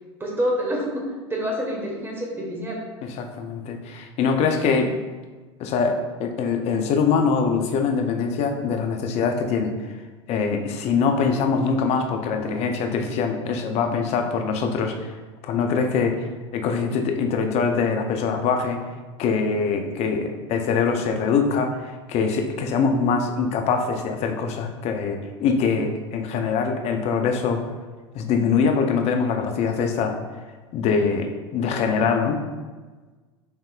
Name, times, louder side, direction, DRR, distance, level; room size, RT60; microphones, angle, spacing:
voice 1, 0.2-1.0 1.3-2.8, equal, 15° right, -2 dB, 1.3 m, -27 dB
voice 2, 3.0-4.9 5.6-9.7 10.3-15.2 15.4-18.8 19.2-27.6 28.1-30.2 30.7-32.4, left 5 dB, 45° left, 4 dB, 0.6 m, -23 dB
5.6 x 3.4 x 2.4 m, 1.3 s
hypercardioid pair, 85°, 15 cm